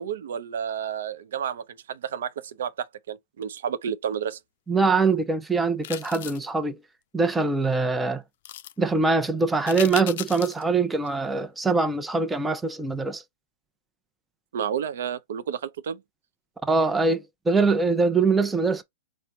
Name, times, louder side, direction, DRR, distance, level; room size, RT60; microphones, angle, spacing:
voice 1, 0.0-4.4 14.5-16.0, right 8 dB, 75° right, 0.6 m, -31 dB
voice 2, 4.7-6.8 7.1-8.2 8.8-13.2 16.6-18.8, right 4 dB, 10° right, 0.6 m, -23 dB
sound 1, 5.8-6.5 8.4-8.7 9.7-10.6 11.0-11.1, left 13 dB, 60° left, 0.4 m, -36 dB
4.4 x 2.1 x 3.7 m
hypercardioid pair, 145°, 0 cm